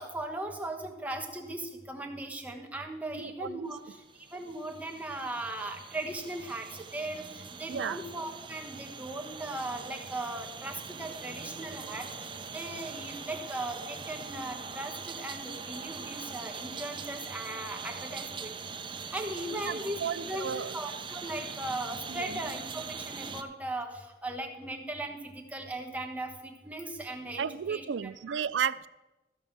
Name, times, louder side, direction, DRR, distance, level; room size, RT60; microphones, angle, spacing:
voice 1, 0.0-3.8 4.3-18.5 19.1-27.8, right 1 dB, 10° right, 2 dB, 1.2 m, -38 dB
voice 2, 3.1-3.7 7.7-8.0 19.5-20.7 22.1-22.4 27.4-28.9, right 7 dB, 90° right, 16 dB, 0.4 m, -34 dB
sound 1, 3.8-23.4, right 5 dB, 30° right, 0.7 m, -42 dB
14.0 x 5.3 x 7.2 m, 1.0 s
head